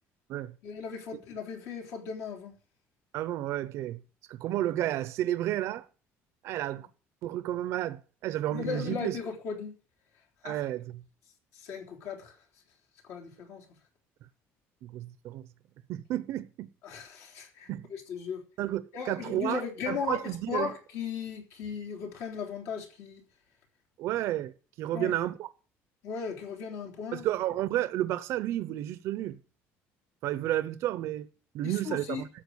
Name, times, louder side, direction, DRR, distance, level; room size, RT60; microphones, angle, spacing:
voice 1, 0.6-2.5 6.7-6.8 8.5-9.7 10.4-10.6 11.5-12.3 13.0-13.6 16.8-18.4 18.9-23.2 24.9-25.1 26.0-27.2 31.6-32.2, left 6 dB, 60° left, 3.5 m, -37 dB
voice 2, 3.1-4.0 4.3-5.9 6.4-6.9 7.2-9.2 10.4-11.0 14.8-15.5 15.9-16.7 17.7-17.9 18.6-20.7 24.0-25.5 27.1-29.4 30.2-31.3 31.5-32.3, right 13 dB, 55° right, 0.7 m, -31 dB
13.0 x 7.8 x 6.4 m
cardioid pair, 180°, 5 cm